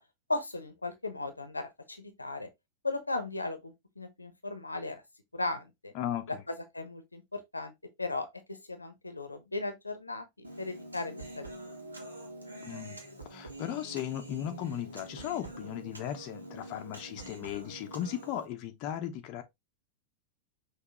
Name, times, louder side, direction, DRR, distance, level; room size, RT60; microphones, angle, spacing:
voice 1, 0.3-2.5 2.8-5.0 5.3-5.9 6.5-7.7 8.0-11.4, left 2 dB, 80° left, 0.9 m, -37 dB
voice 2, 5.9-6.4 12.6-13.0 13.3-19.4, left 11 dB, 40° left, 0.8 m, -36 dB
Human voice, 10.4-18.5, right 1 dB, 80° right, 1.4 m, -46 dB
5.8 x 3.0 x 3.0 m
figure-of-eight pair, 90°, 0 cm